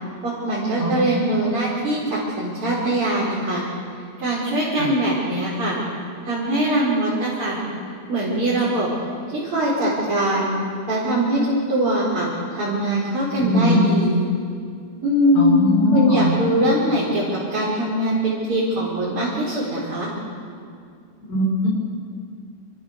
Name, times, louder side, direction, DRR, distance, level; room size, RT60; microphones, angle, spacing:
voice 1, 0.2-3.6 4.2-5.8 6.2-7.6 8.1-8.9 9.3-10.5 10.9-14.2 15.0-20.1, right 1 dB, 25° right, -7 dB, 5.7 m, -22 dB
voice 2, 0.8-1.1 4.8-4.9 13.4-13.8 15.4-16.3 21.3-21.7, left 1 dB, 75° left, -3 dB, 8.5 m, -20 dB
30.0 x 26.0 x 6.9 m, 2.3 s
omnidirectional pair, 5.7 m